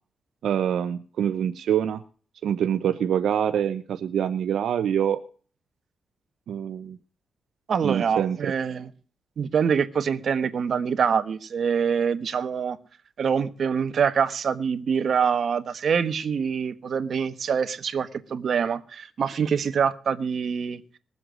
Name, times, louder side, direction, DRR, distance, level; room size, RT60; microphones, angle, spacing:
voice 1, 0.4-2.0 2.4-5.2 6.5-7.0 7.8-8.5, right 9 dB, 85° right, 10 dB, 0.9 m, -25 dB
voice 2, 7.7-8.9 9.4-12.8 13.2-20.8, right 6 dB, 60° right, 11 dB, 1.3 m, -25 dB
20.5 x 7.8 x 6.3 m, 0.41 s
cardioid pair, 120°, 0 cm